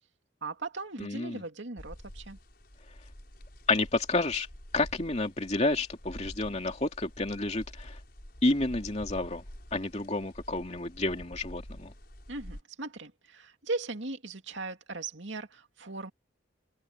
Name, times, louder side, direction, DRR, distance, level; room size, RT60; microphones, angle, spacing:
voice 1, 0.4-2.4 12.3-16.1, right 3 dB, 65° right, 2.5 m, -38 dB
voice 2, 1.0-1.4 3.7-4.5 4.7-8.0 8.4-9.4 9.7-11.9, left 2 dB, 35° left, 2.9 m, -30 dB
sound 1, 1.8-12.6, equal, 50° left, 7.1 m, -48 dB
head